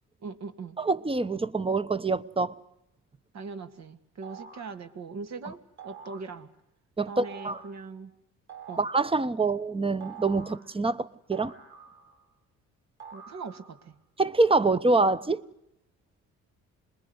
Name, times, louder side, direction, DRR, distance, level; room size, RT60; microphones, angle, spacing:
voice 1, 0.2-0.8 3.3-6.5 7.1-8.1 8.7-8.8 9.4-9.5 13.1-14.0, right 4 dB, 60° right, 2.3 m, -40 dB
voice 2, 0.8-2.5 7.0-7.6 8.8-11.5 14.2-15.4, right 3 dB, 20° right, 1.0 m, -25 dB
sound 1, 4.2-4.8 5.8-6.3 7.2-7.8 8.5-9.1 10.0-10.7 11.3-12.3 13.0-13.8, right 6 dB, 40° right, 4.3 m, -46 dB
27.0 x 21.0 x 9.7 m
cardioid pair, 90°, 30 cm